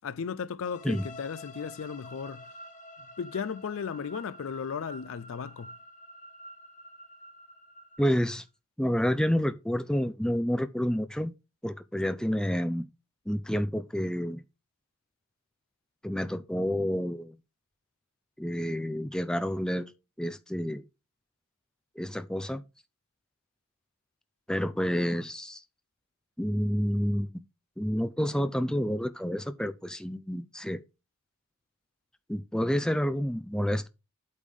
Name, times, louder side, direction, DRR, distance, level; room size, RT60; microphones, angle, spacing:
voice 1, 0.0-2.5 3.2-5.7, left 6 dB, 70° left, 0.4 m, -35 dB
sound 1, 0.6-8.4, equal, 35° left, 1.4 m, -49 dB
voice 2, 8.0-8.4 8.8-11.3 11.6-12.8 13.3-14.4 16.0-17.4 18.4-19.9 20.2-20.8 22.0-22.6 24.5-25.6 26.4-27.3 27.8-30.8 32.3-33.9, equal, 5° left, 0.4 m, -29 dB
8.5 x 3.6 x 6.3 m
head